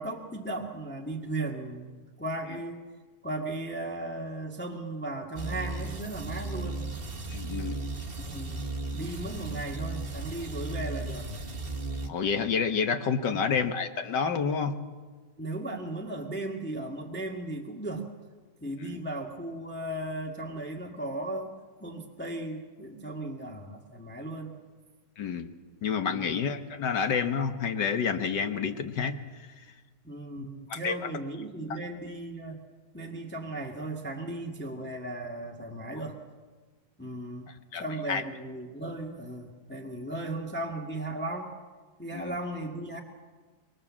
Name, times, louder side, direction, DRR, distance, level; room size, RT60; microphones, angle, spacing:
voice 1, 0.0-2.8 3.2-6.8 8.2-8.6 8.9-11.3 13.3-13.4 15.4-18.1 18.6-21.5 21.8-24.5 26.1-26.4 30.0-32.6 32.9-36.2 37.0-41.5 42.0-43.0, right 2 dB, 5° left, 0 dB, 1.8 m, -36 dB
sound 1, 5.4-12.1, right 2 dB, 35° right, 1.8 m, -35 dB
voice 2, 7.3-7.8 12.1-14.7 25.2-25.5 25.8-29.2 30.4-31.0 37.7-37.8 38.1-38.2 42.1-42.4, left 6 dB, 85° left, 8 dB, 2.0 m, -29 dB
25.0 x 23.0 x 7.4 m, 1.4 s
omnidirectional pair, 1.8 m